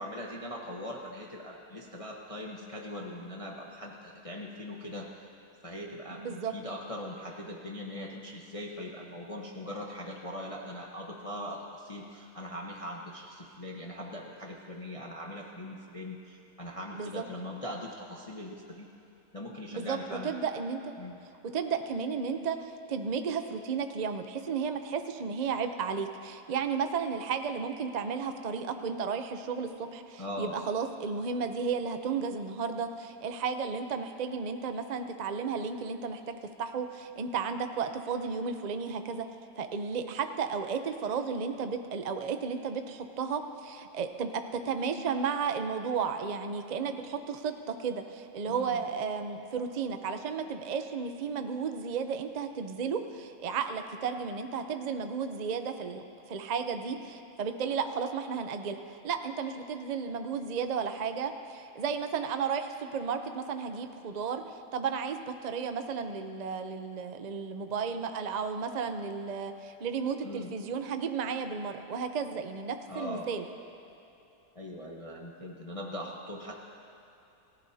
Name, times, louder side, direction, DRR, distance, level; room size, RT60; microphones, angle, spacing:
voice 1, 0.0-5.1 5.6-18.9 19.3-20.3 21.0-21.2 30.2-30.6 48.5-48.8 70.2-70.6 72.9-73.3 74.5-76.5, left 1 dB, 25° left, -2 dB, 0.9 m, -41 dB
voice 2, 6.2-6.5 16.9-17.2 19.7-20.9 21.5-39.3 39.6-56.0 56.3-58.8 59.0-73.4, right 6 dB, 85° right, 7 dB, 0.3 m, -33 dB
28.5 x 15.0 x 2.8 m, 2.8 s
omnidirectional pair, 1.9 m